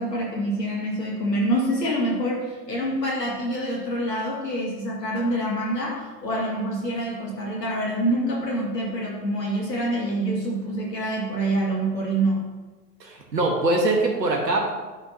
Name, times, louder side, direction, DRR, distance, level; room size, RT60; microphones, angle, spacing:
voice 1, 0.0-12.5, right 1 dB, 80° left, -3 dB, 2.3 m, -26 dB
voice 2, 13.0-14.7, right 2 dB, 80° right, 1 dB, 1.6 m, -23 dB
11.5 x 4.7 x 2.8 m, 1.2 s
figure-of-eight pair, 80°, 49 cm